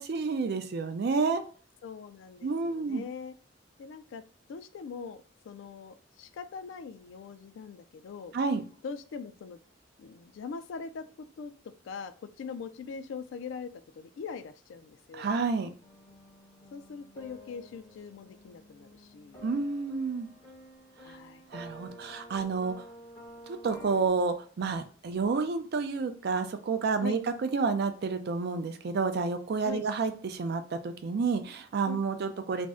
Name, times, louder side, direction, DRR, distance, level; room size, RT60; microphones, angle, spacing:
voice 1, 0.0-1.4 2.4-3.0 8.3-8.6 15.1-15.7 19.4-20.3 21.5-22.7 23.6-32.7, right 4 dB, 55° right, 7 dB, 0.4 m, -30 dB
voice 2, 1.8-3.3 3.8-4.2 4.5-8.3 8.8-9.6 10.0-11.1 11.4-11.5 11.8-15.3 16.7-19.4 21.0-21.4 27.0-27.2 29.6-29.8 31.9-32.0, left 5 dB, 70° left, 11 dB, 0.3 m, -42 dB
sound 1, 15.8-24.1, equal, 20° left, 1.0 m, -50 dB
2.6 x 2.0 x 3.5 m, 0.41 s
head